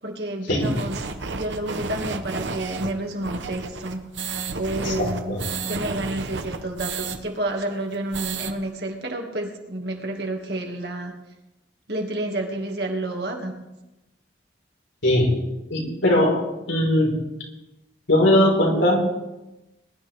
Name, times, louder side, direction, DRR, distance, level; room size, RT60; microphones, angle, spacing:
voice 1, 0.0-4.0 4.6-5.4 5.6-11.1 11.9-13.5, right 1 dB, 60° right, 2 dB, 2.3 m, -30 dB
sound 1, 0.6-7.2 7.5-7.6 7.9-8.5, right 4 dB, 75° right, 1.1 m, -32 dB
voice 2, 4.8-5.4 15.0-15.3 15.7-16.4 16.7-17.1 18.1-19.2, left 1 dB, 90° left, -2 dB, 4.6 m, -20 dB
21.5 x 11.5 x 3.6 m, 0.97 s
head